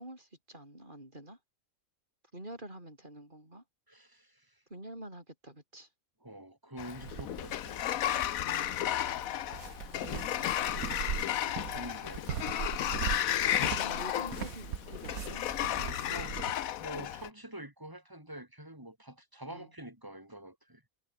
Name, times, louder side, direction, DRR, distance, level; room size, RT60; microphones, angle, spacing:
voice 1, 0.0-1.4 2.3-3.6 4.7-5.9 8.5-9.1 10.1-10.5 13.4-15.5 17.0-17.1 19.5-19.7, right 1 dB, 35° right, 6.7 m, -47 dB
voice 2, 3.9-4.6 6.2-7.8 10.3-10.5 11.0-11.4 11.7-12.3 15.7-16.4 16.8-20.8, right 1 dB, 15° right, 4.6 m, -47 dB
Sliding door, 6.8-17.3, left 12 dB, 80° left, 1.2 m, -33 dB
sound 1, 7.0-16.5, right 9 dB, 85° right, 1.6 m, -41 dB
omnidirectional pair, 1.5 m